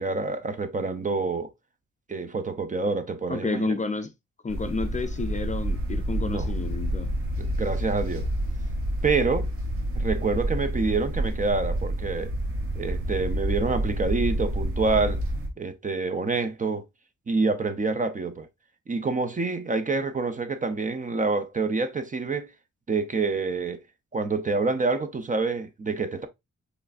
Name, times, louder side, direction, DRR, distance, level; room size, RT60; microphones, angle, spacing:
voice 1, 0.0-1.5 2.1-3.7 6.1-6.5 7.4-8.3 9.0-9.5 9.9-12.3 12.7-15.2 15.6-16.8 17.3-18.5 18.9-22.5 22.9-23.8 24.1-26.3, right 3 dB, 25° right, 0.5 m, -27 dB
voice 2, 3.3-4.1 4.4-7.1, left 4 dB, 25° left, 0.4 m, -30 dB
sound 1, 4.5-15.5, right 1 dB, 50° right, 1.1 m, -29 dB
4.6 x 3.2 x 2.4 m
cardioid pair, 100°, 29 cm